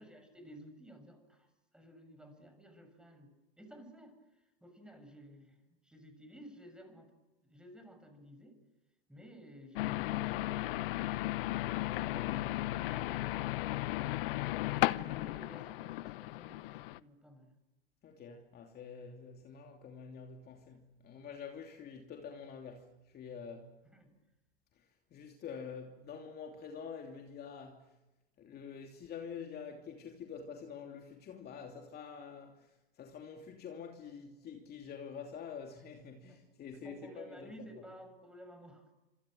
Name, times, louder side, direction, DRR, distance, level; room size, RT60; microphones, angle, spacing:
voice 1, 0.0-1.5 1.7-7.1 7.4-8.6 9.1-11.4 12.2-12.6 12.9-13.7 15.0-17.6 23.9-24.1 36.3-36.4 36.7-38.9, equal, 5° right, 7.0 m, -54 dB
sound 1, 9.8-17.0, left 17 dB, 65° left, 1.0 m, -35 dB
voice 2, 11.8-12.8 18.0-23.8 24.7-27.9 28.4-37.5, left 6 dB, 30° left, 2.9 m, -47 dB
27.5 x 26.5 x 7.9 m
hypercardioid pair, 115°, 30 cm